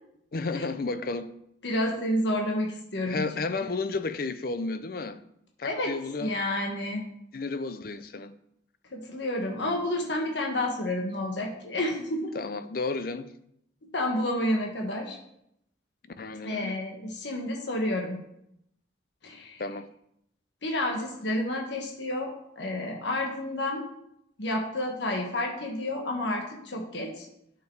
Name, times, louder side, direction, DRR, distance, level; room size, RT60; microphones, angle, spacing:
voice 1, 0.3-1.3 3.0-5.2 5.6-6.3 7.3-8.3 12.3-13.3 16.2-16.7 19.6-19.9, left 3 dB, 50° left, 0.5 m, -32 dB
voice 2, 1.6-3.2 5.6-5.9 6.2-7.1 8.9-12.3 13.9-15.2 16.4-18.2 19.2-19.6 20.6-23.8 24.4-27.3, left 1 dB, 65° left, 1.3 m, -30 dB
8.4 x 6.7 x 4.6 m
head